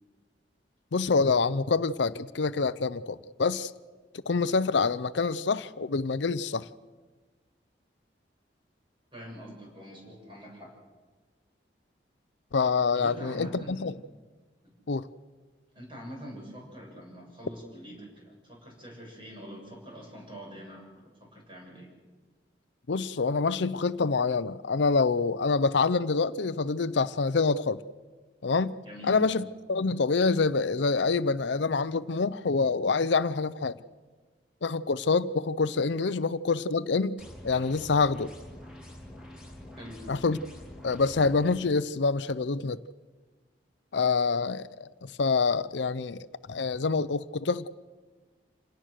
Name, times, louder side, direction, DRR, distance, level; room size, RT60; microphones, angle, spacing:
voice 1, 0.9-3.7 4.3-6.7 12.5-13.9 14.9-15.1 22.9-27.8 28.4-28.7 29.1-33.8 34.6-38.3 40.1-40.4 40.8-42.8 43.9-47.7, left 4 dB, 75° left, 0.6 m, -26 dB
voice 2, 9.1-10.7 12.9-13.9 14.6-14.7 15.7-21.9 28.9-29.2 39.8-40.0, equal, 25° right, 7.0 m, -44 dB
sound 1, 37.2-41.6, left 1 dB, 5° right, 3.3 m, -46 dB
27.5 x 18.0 x 6.5 m
head